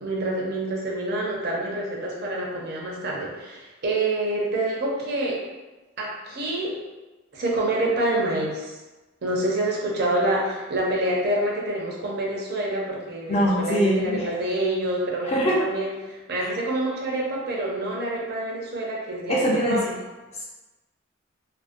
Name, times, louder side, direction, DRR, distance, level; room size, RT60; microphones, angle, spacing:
voice 1, 0.0-5.4 6.0-6.8 7.3-8.7 9.2-19.9, right 1 dB, 50° right, -3 dB, 0.5 m, -27 dB
voice 2, 13.3-14.3 15.2-15.6 16.4-16.5 19.3-19.8, equal, 30° left, -4 dB, 0.4 m, -22 dB
2.4 x 2.1 x 2.5 m, 1.2 s
head